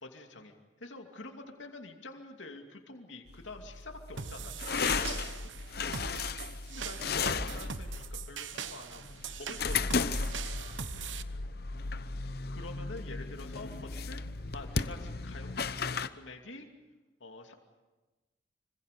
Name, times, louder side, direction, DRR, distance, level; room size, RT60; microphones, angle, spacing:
voice 1, 0.0-5.5 6.7-10.4 10.9-11.7 12.5-14.2 14.5-15.6 16.1-16.7 17.2-17.5, left 2 dB, 80° left, 3 dB, 2.6 m, -47 dB
sound 1, 3.3-16.1, left 4 dB, 55° left, 0.8 m, -35 dB
sound 2, 4.2-11.2, right 6 dB, 85° right, 1.1 m, -41 dB
26.0 x 25.5 x 6.8 m, 1.2 s
head